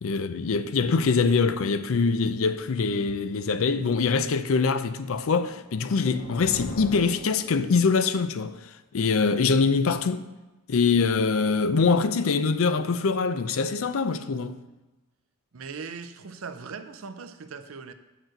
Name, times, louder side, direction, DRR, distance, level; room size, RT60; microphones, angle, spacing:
voice 1, 0.0-8.5 8.9-10.3 10.7-14.6, left 4 dB, 70° left, 0.5 m, -24 dB
sound 1, 5.5-8.1, left 2 dB, 50° left, 0.8 m, -39 dB
voice 2, 15.5-17.9, right 5 dB, 75° right, 0.6 m, -39 dB
7.5 x 4.8 x 6.4 m
head